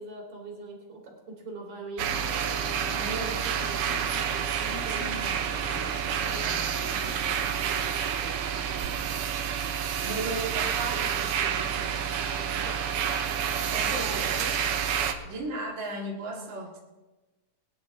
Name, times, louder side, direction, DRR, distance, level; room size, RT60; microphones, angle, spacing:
voice 1, 0.0-9.2 10.0-10.3 10.6-12.8 13.6-14.6, right 3 dB, 60° right, -1 dB, 4.5 m, -43 dB
sound 1, 2.0-15.1, right 8 dB, 90° right, 2.6 m, -29 dB
sound 2, 2.1-7.1, left 3 dB, 80° left, 0.6 m, -43 dB
voice 2, 2.9-3.4 10.0-11.5 13.7-14.4 15.2-16.8, right 2 dB, 40° right, -3 dB, 2.5 m, -35 dB
22.0 x 10.5 x 3.8 m, 1.1 s
omnidirectional pair, 3.7 m